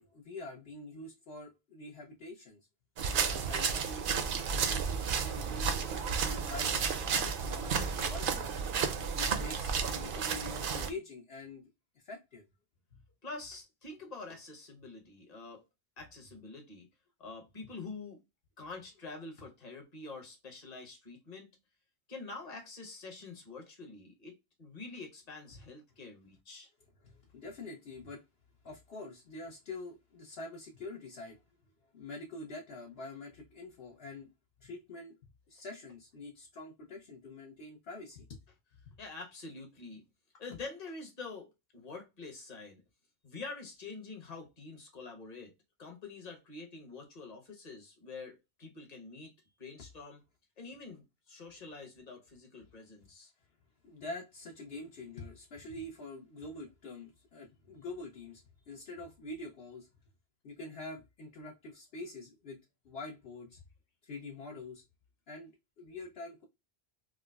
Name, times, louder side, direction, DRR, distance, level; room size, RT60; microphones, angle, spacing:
voice 1, 0.0-2.6 3.5-8.4 9.1-11.6 12.0-12.4 12.9-13.0 25.5-25.6 27.0-28.2 28.6-31.4 31.9-34.3 34.6-35.2 35.5-38.3 38.9-39.0 53.8-59.9 60.4-62.6 62.8-63.6 64.0-64.8 65.3-65.5 65.8-66.4, left 2 dB, 70° left, 0.9 m, -45 dB
sound 1, 3.0-10.9, right 6 dB, 60° right, 0.7 m, -32 dB
voice 2, 13.2-15.6 16.0-16.9 17.2-18.2 18.6-21.5 22.1-26.7 39.0-40.0 40.4-42.8 43.2-45.5 45.8-49.3 49.6-50.2 50.6-53.3, left 3 dB, 40° left, 1.1 m, -46 dB
4.6 x 2.0 x 2.3 m
omnidirectional pair, 1.1 m